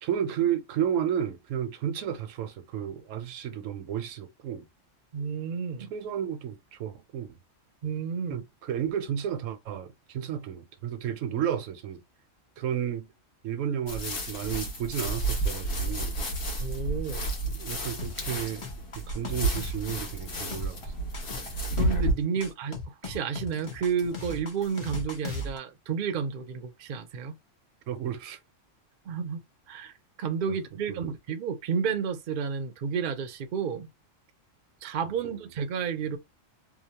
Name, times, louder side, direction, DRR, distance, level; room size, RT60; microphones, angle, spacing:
voice 1, 0.0-4.6 5.9-7.4 8.3-12.0 12.6-13.1 13.4-16.2 17.5-18.7 18.9-20.8 27.9-28.4 30.5-30.6 30.9-31.1, right 9 dB, 80° right, 1.0 m, -32 dB
voice 2, 5.1-5.9 7.8-8.4 16.6-17.2 21.8-27.4 29.1-29.4 29.7-29.9 30.2-33.9 34.8-36.2, right 6 dB, 60° right, 0.5 m, -31 dB
sound 1, 13.9-22.1, right 1 dB, 60° left, 1.1 m, -31 dB
sound 2, 18.0-25.6, left 3 dB, 30° left, 0.6 m, -39 dB
2.8 x 2.0 x 2.8 m
omnidirectional pair, 1.3 m